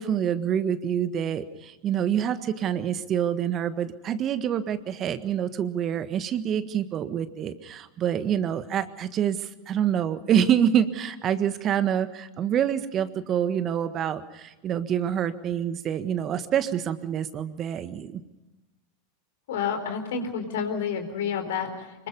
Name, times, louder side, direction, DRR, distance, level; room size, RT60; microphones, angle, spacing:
voice 1, 0.0-18.2, right 9 dB, 35° right, 11 dB, 1.6 m, -26 dB
voice 2, 19.5-22.1, left 6 dB, 65° left, 7 dB, 4.2 m, -29 dB
25.5 x 23.0 x 5.4 m, 1.0 s
hypercardioid pair, 90°, 0 cm